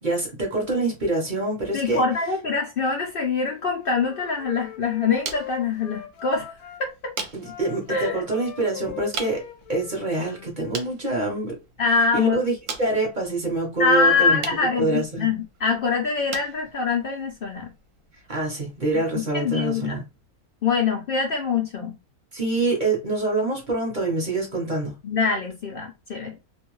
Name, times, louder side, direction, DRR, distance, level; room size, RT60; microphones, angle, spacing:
voice 1, 0.0-2.0 7.3-11.5 12.1-14.4 14.8-15.3 18.3-20.0 22.3-24.9, right 2 dB, 40° right, 0.8 m, -26 dB
voice 2, 1.7-6.5 6.8-7.1 7.9-8.2 11.8-12.4 13.8-17.7 18.9-19.0 19.3-20.0 20.6-22.0 25.0-26.3, left 4 dB, 65° left, 0.5 m, -24 dB
Wind instrument woodwind instrument, 3.5-6.8 7.4-10.9, left 11 dB, 80° left, 1.1 m, -41 dB
sound 1, 4.0-19.0, right 5 dB, 65° right, 1.0 m, -41 dB
2.6 x 2.2 x 2.9 m
omnidirectional pair, 1.6 m